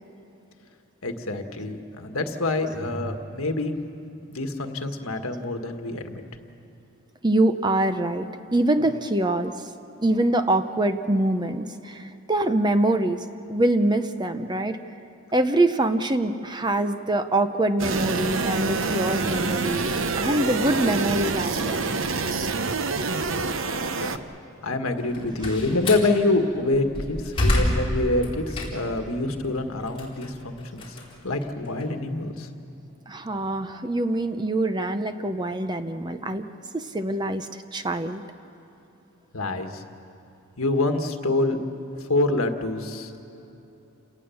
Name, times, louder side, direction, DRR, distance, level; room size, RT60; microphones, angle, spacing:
voice 1, 1.0-3.7 4.3-6.2 24.0-24.2 24.6-31.0 31.2-32.5 39.3-39.8 40.6-41.6 42.1-43.1, left 2 dB, 80° left, 6 dB, 1.6 m, -26 dB
voice 2, 7.2-9.7 10.0-14.8 15.3-21.8 33.1-36.4 36.7-38.2, right 1 dB, 20° right, 9 dB, 0.7 m, -24 dB
sound 1, 17.8-24.2, right 4 dB, 65° right, 0.9 m, -26 dB
Slam, 25.0-26.1 26.7-29.0 29.4-31.8, left 1 dB, 25° left, 4.2 m, -27 dB
29.0 x 18.5 x 7.1 m, 3.0 s
head